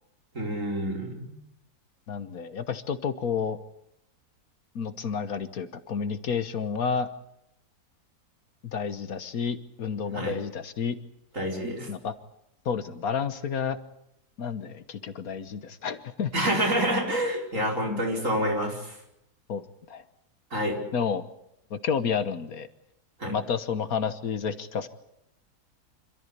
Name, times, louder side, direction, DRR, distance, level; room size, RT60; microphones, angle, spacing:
voice 1, 0.4-1.3 10.1-10.3 11.3-11.9 16.3-18.9 20.5-20.8 23.2-23.3, equal, 55° right, 0 dB, 5.3 m, -27 dB
voice 2, 2.1-3.6 4.7-7.1 8.6-11.0 11.9-12.1 12.6-13.8 14.4-16.3 17.9-18.0 19.5-19.6 19.9-20.0 20.9-21.2 21.7-22.7 23.3-24.9, left 6 dB, 65° left, 12 dB, 1.6 m, -30 dB
27.0 x 14.0 x 9.9 m, 0.81 s
omnidirectional pair, 1.6 m